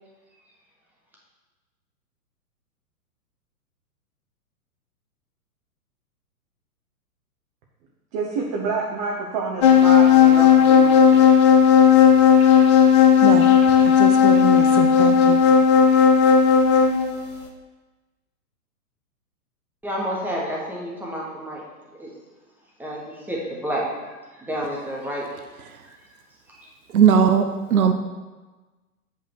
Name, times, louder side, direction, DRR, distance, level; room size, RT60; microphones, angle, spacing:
voice 1, 8.1-11.3, right 4 dB, 30° right, 0.9 m, -28 dB
sound 1, 9.6-17.1, left 7 dB, 20° left, 0.5 m, -14 dB
voice 2, 13.2-13.5 13.8-15.4 26.9-27.9, right 7 dB, 65° right, 0.8 m, -20 dB
voice 3, 19.8-21.6 22.0-22.1 22.8-25.3 25.6-26.0 26.5-26.7, equal, 5° right, 1.4 m, -30 dB
8.4 x 5.6 x 4.6 m
figure-of-eight pair, 115°, 46 cm